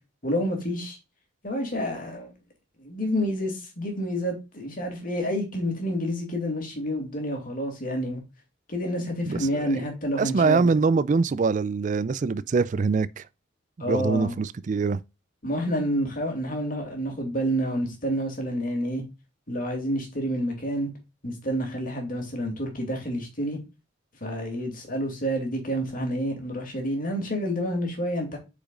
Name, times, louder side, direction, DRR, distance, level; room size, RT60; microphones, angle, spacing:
voice 1, 0.2-1.0 1.4-2.3 2.8-8.2 8.7-10.7 13.8-14.4 15.4-19.0 19.5-20.9 21.2-23.6 24.2-28.4, equal, 45° left, 2.5 m, -29 dB
voice 2, 9.2-9.8 10.2-13.3 13.8-15.0, right 4 dB, 40° right, 0.3 m, -24 dB
8.6 x 5.0 x 2.4 m
head